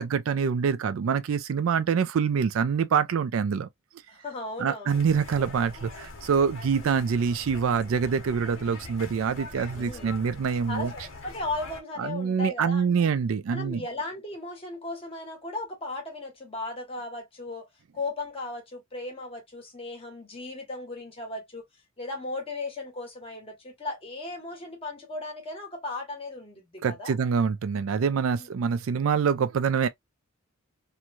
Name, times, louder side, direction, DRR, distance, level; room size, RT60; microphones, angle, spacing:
voice 1, 0.0-3.7 4.6-10.9 12.0-13.8 26.8-29.9, right 6 dB, 70° right, 0.4 m, -25 dB
voice 2, 4.1-5.0 9.8-10.2 10.7-12.9 13.5-17.7 17.9-21.6 22.0-27.1 28.3-28.5, left 2 dB, 30° left, 1.3 m, -36 dB
sound 1, 4.9-11.8, left 3 dB, 70° left, 1.1 m, -43 dB
3.0 x 2.2 x 2.4 m
head